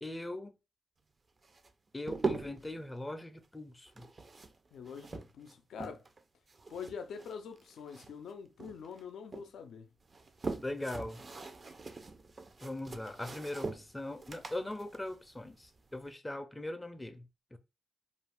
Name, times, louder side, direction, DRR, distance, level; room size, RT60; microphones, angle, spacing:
voice 1, 0.0-0.6 1.9-4.1 10.6-11.2 12.6-17.6, left 1 dB, 15° left, 0.4 m, -40 dB
sound 1, 1.4-2.7 3.9-6.2 6.5-8.3 8.6-9.5 10.0-16.1, right 3 dB, 40° right, 0.4 m, -42 dB
voice 2, 4.7-6.0 6.7-9.9, left 6 dB, 80° left, 0.4 m, -45 dB
2.4 x 2.3 x 3.4 m
cardioid pair, 65°, 0 cm